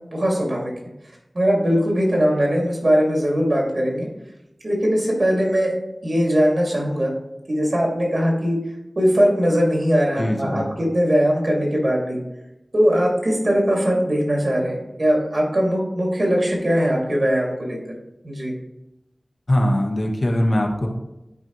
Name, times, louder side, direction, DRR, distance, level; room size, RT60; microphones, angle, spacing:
voice 1, 0.1-0.7 1.3-4.1 4.6-5.8 6.0-7.1 7.5-8.6 9.0-12.2 12.7-17.8 18.2-18.5, equal, 60° right, -1 dB, 2.3 m, -20 dB
voice 2, 10.2-10.7 19.5-20.9, left 1 dB, 60° left, 1 dB, 1.2 m, -21 dB
10.5 x 4.4 x 3.1 m, 0.90 s
wide cardioid pair, 60°, 0 cm